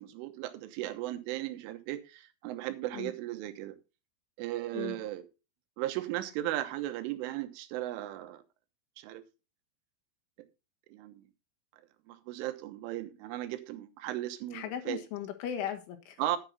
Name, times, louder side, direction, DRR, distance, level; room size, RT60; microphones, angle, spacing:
voice 1, 0.0-3.8 4.4-5.3 5.8-8.4 9.0-9.2 10.9-11.2 12.1-15.0 16.2-16.4, right 14 dB, 85° right, 3.6 m, -36 dB
voice 2, 14.5-16.2, left 10 dB, 80° left, 4.0 m, -37 dB
10.5 x 10.0 x 4.1 m
omnidirectional pair, 5.6 m